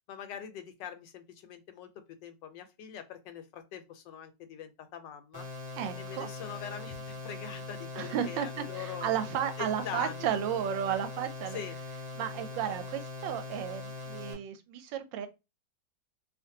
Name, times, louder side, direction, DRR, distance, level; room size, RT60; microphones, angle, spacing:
voice 1, 0.1-5.5 6.0-9.1 9.6-10.3 11.5-11.8, left 8 dB, 75° left, 1.2 m, -43 dB
sound 1, 5.3-14.3, left 3 dB, 45° right, 1.1 m, -41 dB
voice 2, 5.8-6.3 7.9-8.5 8.7-11.6 12.2-15.3, right 9 dB, 85° right, 1.3 m, -33 dB
2.8 x 2.5 x 2.6 m
omnidirectional pair, 2.0 m